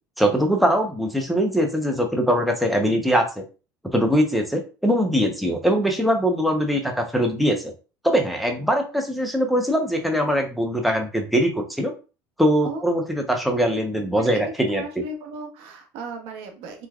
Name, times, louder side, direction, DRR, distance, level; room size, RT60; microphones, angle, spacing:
voice 1, 0.2-3.4 3.9-7.7 8.0-11.9 12.4-14.8, equal, ahead, 2 dB, 0.7 m, -22 dB
voice 2, 12.6-13.0 14.2-14.4 14.7-16.9, right 3 dB, 70° right, 3 dB, 0.9 m, -36 dB
3.2 x 2.3 x 2.3 m, 0.33 s
supercardioid pair, 90°, 10 cm